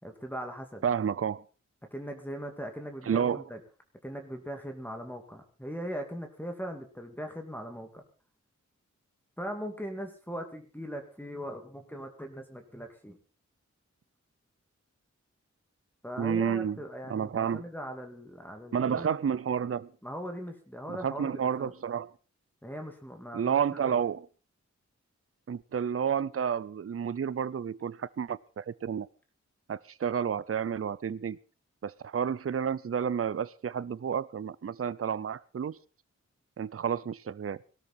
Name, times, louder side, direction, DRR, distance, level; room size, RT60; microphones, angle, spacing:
voice 1, 0.0-0.8 1.9-3.6 4.0-8.0 9.4-13.2 16.0-19.2 20.0-21.7 22.6-23.6 23.9-24.0, equal, 5° left, 2.4 m, -40 dB
voice 2, 0.8-1.4 3.0-3.4 16.2-16.8 17.1-17.6 18.7-19.9 20.9-22.1 23.3-24.3 25.5-29.1 29.7-31.4 31.8-35.8 36.6-37.6, right 7 dB, 50° right, 0.6 m, -30 dB
18.0 x 13.0 x 4.3 m
wide cardioid pair, 65°, 30 cm